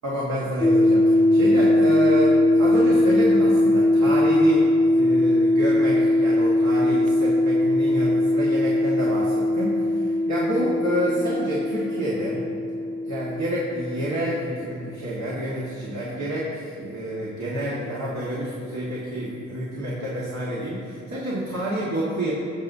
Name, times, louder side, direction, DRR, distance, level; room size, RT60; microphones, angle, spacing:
voice 1, 0.0-12.4 13.0-22.3, right 1 dB, 70° right, -6 dB, 1.7 m, -28 dB
sound 1, 0.6-14.6, left 1 dB, 5° left, 0.6 m, -20 dB
18.5 x 6.8 x 2.7 m, 2.5 s
cardioid pair, 80°, 29 cm